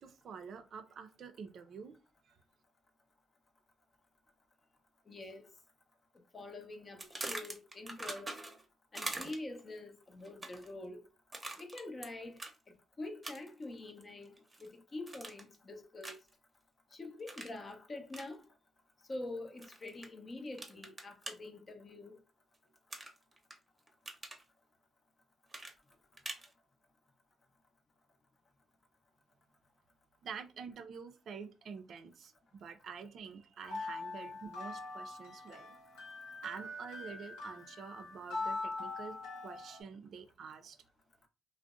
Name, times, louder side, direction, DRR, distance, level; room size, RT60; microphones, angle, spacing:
voice 1, 0.0-1.9 2.2-2.4 30.2-35.8 36.4-40.8, right 6 dB, 65° right, 0.4 m, -48 dB
voice 2, 5.1-5.5 6.3-8.4 8.9-11.1 11.6-12.4 12.7-16.2 16.9-18.5 19.1-22.2, left 2 dB, 40° left, 0.6 m, -46 dB
sound 1, 7.0-8.6 8.9-9.6 10.2-10.7 11.3-12.1 12.4-12.5 13.2-13.6 14.0-14.7 15.1-15.5 16.0-16.3 17.3-17.6 18.1-18.3 19.6-20.1 20.6-21.3 22.9-23.5 23.9-24.4 25.5-26.5, right 2 dB, 30° right, 0.7 m, -43 dB
sound 2, 33.6-39.8, left 2 dB, 85° left, 0.9 m, -42 dB
2.6 x 2.0 x 2.3 m
hypercardioid pair, 50°, 0 cm